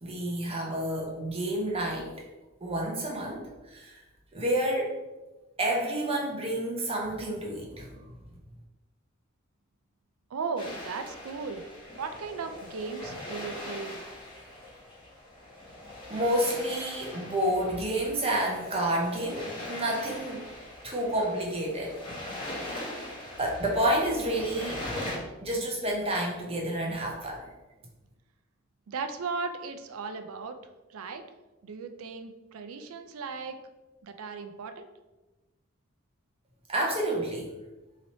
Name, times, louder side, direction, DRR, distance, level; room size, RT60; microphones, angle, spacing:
voice 1, 0.0-2.1 2.6-3.9 4.3-4.9 5.6-8.0 16.1-20.5 20.8-21.9 23.4-24.8 25.4-27.4 36.7-37.5, right 1 dB, 30° right, -1 dB, 0.7 m, -29 dB
voice 2, 10.3-11.6 12.0-14.0 28.9-30.6 30.9-31.3 31.6-33.6 34.0-34.9, right 4 dB, 85° right, 7 dB, 0.4 m, -36 dB
sound 1, 10.6-25.2, left 1 dB, 25° left, 1.0 m, -41 dB
3.1 x 2.9 x 4.1 m, 1.1 s
head